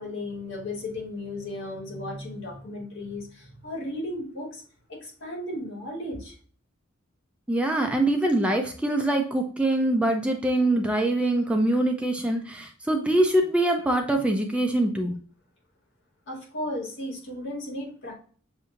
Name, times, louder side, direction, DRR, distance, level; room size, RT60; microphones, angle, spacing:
voice 1, 0.0-4.6 4.9-6.4 16.3-18.1, left 1 dB, 65° left, -1 dB, 1.9 m, -35 dB
voice 2, 7.5-15.1, right 1 dB, 5° right, 3 dB, 0.5 m, -24 dB
7.2 x 2.7 x 2.5 m, 0.43 s
head